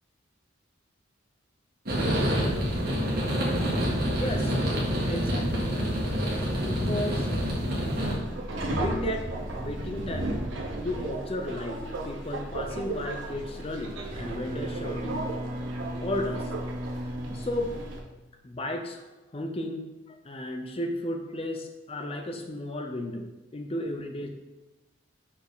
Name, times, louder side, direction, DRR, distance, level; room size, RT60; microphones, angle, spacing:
sound 1, 1.9-8.1, equal, 50° right, 1.7 m, -27 dB
voice 1, 4.1-4.6 5.1-5.9 6.5-7.3 8.6-9.3 9.5-10.4 10.7-15.3 16.0-16.5 17.3-17.8 18.4-24.3, left 1 dB, 30° left, 4 dB, 0.6 m, -34 dB
Subway metro underground, 7.9-18.0, right 2 dB, 80° right, 1.1 m, -35 dB
Bowed string instrument, 14.0-18.4, equal, 30° right, 0.4 m, -37 dB
5.7 x 4.8 x 3.9 m, 1.1 s
head